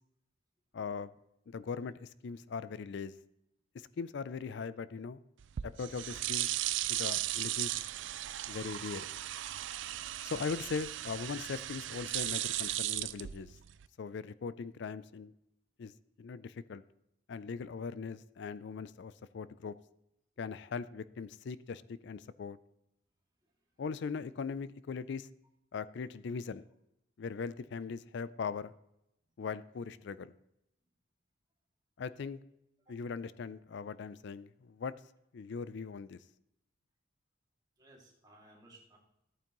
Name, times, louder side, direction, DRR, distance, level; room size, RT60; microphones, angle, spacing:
voice 1, 0.7-1.1 1.5-3.1 4.0-5.2 5.6-6.5 6.9-7.8 8.5-9.1 10.2-13.6 14.0-15.3 15.8-15.9 16.2-16.8 17.3-19.7 20.4-22.6 23.8-25.3 25.7-26.7 27.2-28.7 29.4-30.3 32.0-32.4 32.9-34.9 35.3-36.2, left 5 dB, 60° left, 16 dB, 0.4 m, -40 dB
sound 1, 5.4-13.9, right 14 dB, 65° right, 0.4 m, -36 dB
voice 2, 37.8-39.0, right 1 dB, 20° right, -2 dB, 2.3 m, -60 dB
14.0 x 8.8 x 3.0 m, 0.84 s
head